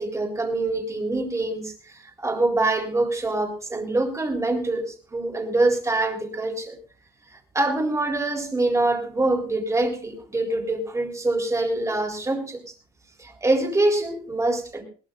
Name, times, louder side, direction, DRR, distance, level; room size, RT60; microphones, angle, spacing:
voice 1, 0.0-6.8 7.5-12.6 13.2-14.8, right 2 dB, 15° right, 2 dB, 3.9 m, -25 dB
21.0 x 17.5 x 2.5 m, 0.37 s
cardioid pair, 110°, 17 cm